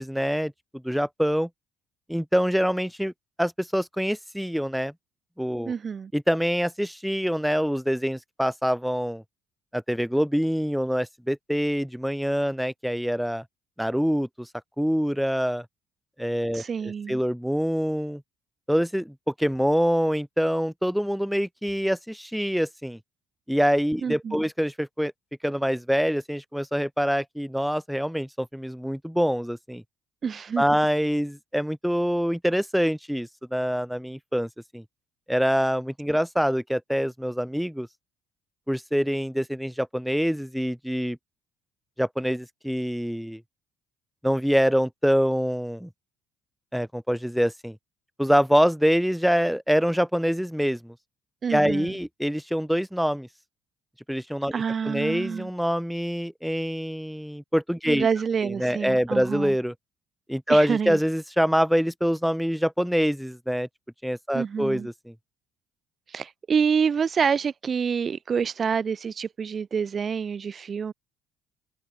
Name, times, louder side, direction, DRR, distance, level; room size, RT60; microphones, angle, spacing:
voice 1, 0.0-1.5 2.1-3.1 3.4-4.9 5.4-5.7 6.1-9.2 9.7-13.4 13.8-14.5 14.8-15.7 16.2-18.2 18.7-23.0 23.5-25.1 25.4-29.8 30.6-34.8 35.3-37.9 38.7-41.2 42.0-43.4 44.2-45.9 46.7-47.8 48.2-50.9 51.5-53.3 54.1-58.1 58.4-59.7 60.3-63.7 64.0-65.1, equal, ahead, 1.8 m, -25 dB
voice 2, 5.6-6.1 16.5-17.2 24.0-24.4 30.2-30.6 51.4-52.0 54.5-55.5 57.9-59.5 60.5-61.0 64.3-64.9 66.1-70.9, right 6 dB, 45° right, 1.4 m, -27 dB
open air
hypercardioid pair, 60°, 0 cm